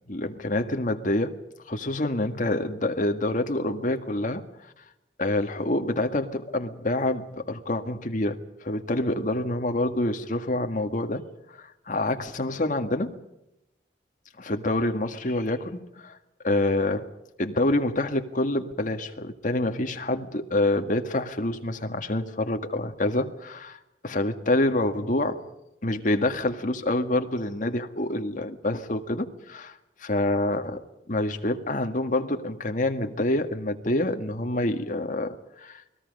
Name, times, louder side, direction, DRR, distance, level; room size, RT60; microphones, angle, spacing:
voice 1, 0.1-1.3 1.7-4.4 5.2-13.2 14.4-16.2 16.4-17.1 17.4-25.5 25.8-30.8 31.1-36.0, left 1 dB, 50° left, 1.9 m, -27 dB
29.0 x 20.5 x 5.5 m
head